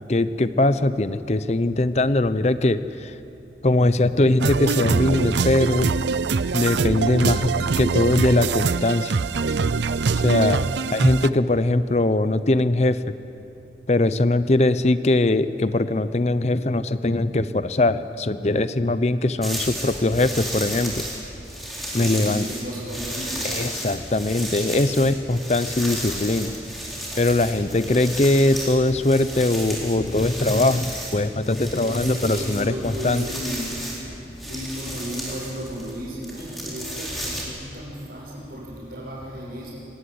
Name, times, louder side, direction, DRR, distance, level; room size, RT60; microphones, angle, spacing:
voice 1, 0.1-3.1 3.6-5.9 6.5-9.1 10.2-10.6 10.9-13.0 13.9-21.0 21.9-22.5 23.4-26.5 27.1-33.2, left 2 dB, 40° left, 13 dB, 0.7 m, -21 dB
sound 1, 4.4-11.3, right 4 dB, 85° right, 0.5 m, -23 dB
sound 2, 19.4-37.4, equal, ahead, 4.2 m, -33 dB
voice 2, 21.9-23.4 31.7-33.7 34.5-39.7, equal, 55° right, -9 dB, 6.4 m, -34 dB
24.0 x 17.0 x 9.8 m, 2.9 s
head